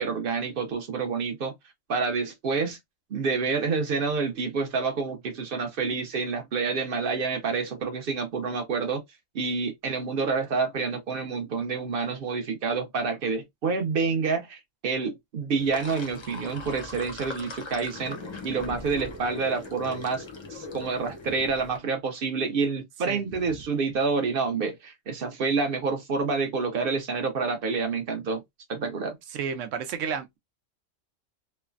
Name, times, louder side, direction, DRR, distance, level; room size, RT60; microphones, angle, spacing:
voice 1, 0.0-1.5 1.9-2.8 3.1-9.0 9.3-18.2 18.4-28.4 28.7-29.2, right 4 dB, 55° right, 0.8 m, -28 dB
Sink (filling or washing), 15.5-21.8, left 2 dB, 40° left, 0.4 m, -40 dB
voice 2, 29.3-30.4, right 7 dB, 80° right, 1.0 m, -31 dB
3.1 x 2.1 x 2.3 m
omnidirectional pair, 1.3 m